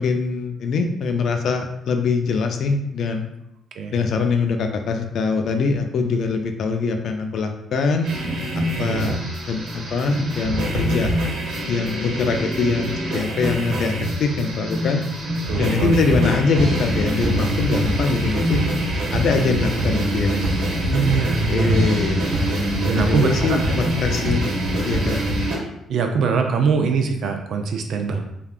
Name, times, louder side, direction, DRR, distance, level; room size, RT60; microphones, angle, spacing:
voice 1, 0.0-3.3 3.9-8.1 8.5-9.2 9.5-11.1 11.7-15.0 15.5-18.7 19.1-20.3 21.5-22.5 22.9-24.5 24.8-25.3, left 4 dB, 65° left, 5 dB, 0.3 m, -23 dB
sound 1, 8.0-25.6, equal, 85° right, 1.1 m, -24 dB
voice 2, 8.8-9.2 15.5-16.0 18.3-18.8 20.9-21.9 22.9-23.5 25.9-28.2, right 5 dB, 70° right, 5 dB, 0.4 m, -22 dB
3.4 x 2.3 x 2.4 m, 0.81 s
cardioid pair, 90°, 0 cm